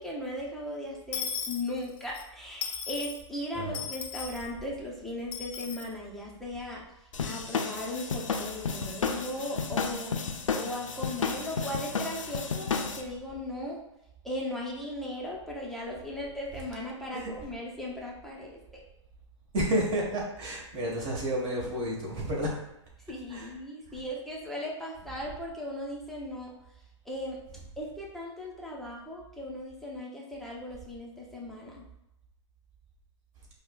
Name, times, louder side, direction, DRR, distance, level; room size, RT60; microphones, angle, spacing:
voice 1, 0.0-6.8 7.2-10.2 10.5-13.8 14.2-18.8 23.1-26.5 27.1-27.4 27.8-31.8, left 1 dB, ahead, -4 dB, 0.6 m, -37 dB
Dishes pots and pans / Coin (dropping), 1.1-2.2 2.6-3.2 3.7-4.5 5.3-5.9, left 7 dB, 45° left, 0.6 m, -36 dB
sound 1, 7.1-13.0, left 5 dB, 85° left, 0.5 m, -32 dB
voice 2, 19.5-22.5 23.3-23.5, right 1 dB, 30° right, -4 dB, 1.2 m, -30 dB
4.6 x 2.1 x 2.3 m, 0.86 s
hypercardioid pair, 120°, 16 cm